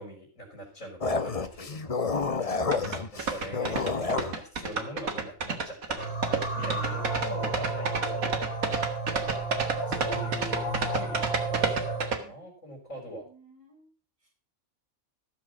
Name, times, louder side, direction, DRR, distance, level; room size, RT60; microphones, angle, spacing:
voice 1, 0.0-2.0 3.1-6.0 6.6-8.3 9.1-9.5 9.9-13.2, right 1 dB, 65° left, -4 dB, 4.6 m, -42 dB
sound 1, 1.0-4.4, left 4 dB, 30° left, 0.9 m, -29 dB
voice 2, 2.2-2.9 6.5-6.9 12.2-12.3 12.9-13.9 14.2-14.3, right 2 dB, 20° right, -3 dB, 5.5 m, -51 dB
sound 2, 2.7-12.2, right 4 dB, 80° right, 2.2 m, -29 dB
sound 3, 6.0-12.1, right 3 dB, 80° left, 3.2 m, -32 dB
14.5 x 7.2 x 6.1 m, 0.40 s
omnidirectional pair, 1.4 m